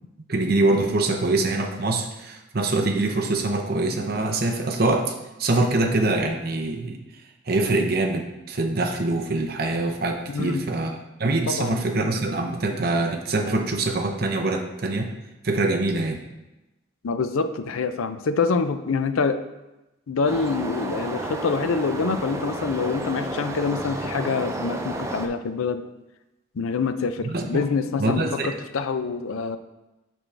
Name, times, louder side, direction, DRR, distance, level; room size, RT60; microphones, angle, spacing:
voice 1, 0.3-7.0 7.5-15.1 15.4-16.2 27.2-27.6 28.0-28.5, right 2 dB, 50° right, 3 dB, 0.7 m, -24 dB
voice 2, 10.3-10.6 11.5-11.8 17.0-19.4 20.1-25.9 26.6-29.6, left 4 dB, 85° left, 10 dB, 0.5 m, -26 dB
sound 1, 20.3-25.3, right 2 dB, 15° right, 0.4 m, -31 dB
6.2 x 6.0 x 3.3 m, 1.0 s
head